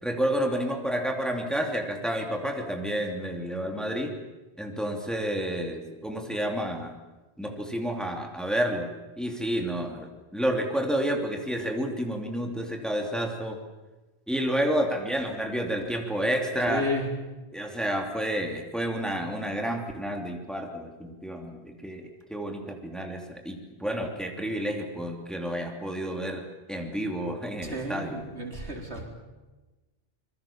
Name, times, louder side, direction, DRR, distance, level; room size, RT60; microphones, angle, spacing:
voice 1, 0.0-4.1 4.6-6.9 7.4-13.6 14.3-16.9 17.5-22.0 22.3-26.4 26.7-28.2, equal, ahead, 2 dB, 2.8 m, -30 dB
voice 2, 16.7-17.1 27.6-29.1, left 1 dB, 80° right, 1 dB, 4.5 m, -32 dB
26.5 x 22.0 x 7.3 m, 1.1 s
omnidirectional pair, 1.1 m